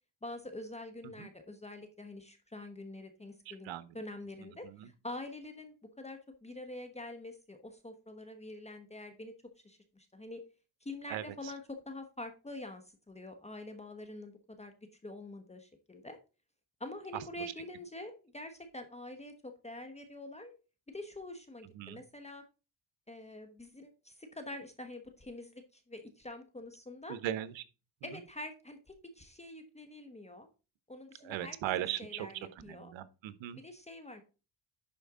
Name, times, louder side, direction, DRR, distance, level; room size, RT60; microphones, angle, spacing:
voice 1, 0.2-9.3 9.6-10.4 10.8-14.7 15.0-16.2 16.8-20.5 20.9-22.4 23.1-27.2 28.0-28.8 29.1-30.5 30.9-32.9 33.5-34.2, left 2 dB, 15° left, 6 dB, 1.0 m, -46 dB
voice 2, 27.1-27.6 31.2-32.3 32.6-33.6, right 12 dB, 85° right, 14 dB, 0.9 m, -37 dB
11.0 x 4.4 x 3.7 m, 0.32 s
cardioid pair, 95°, 44 cm